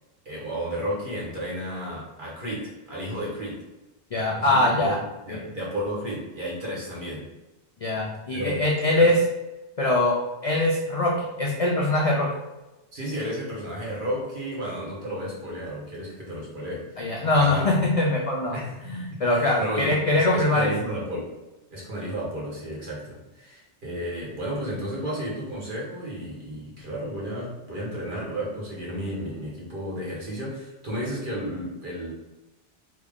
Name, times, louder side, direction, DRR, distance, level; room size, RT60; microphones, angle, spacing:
voice 1, 0.2-3.6 4.3-7.3 8.3-8.7 8.9-9.1 12.9-17.0 17.3-17.7 18.5-21.3 21.7-32.1, equal, 50° right, -5 dB, 1.2 m, -33 dB
voice 2, 4.1-5.0 5.3-5.4 7.8-9.2 9.8-10.2 10.4-12.3 17.0-18.5 18.9-20.7, left 2 dB, 55° left, -2 dB, 0.4 m, -22 dB
3.5 x 2.3 x 3.5 m, 1.0 s
omnidirectional pair, 1.2 m